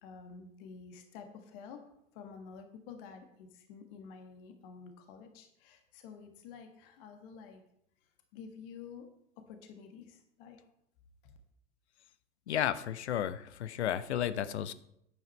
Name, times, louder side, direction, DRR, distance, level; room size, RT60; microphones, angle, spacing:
voice 1, 0.0-7.6 8.3-9.1 9.5-10.6 11.2-11.4, left 6 dB, 50° left, 6 dB, 1.5 m, -50 dB
voice 2, 12.5-14.7, left 10 dB, 65° left, 15 dB, 0.8 m, -33 dB
10.5 x 8.9 x 4.3 m, 0.76 s
figure-of-eight pair, 85°, 36 cm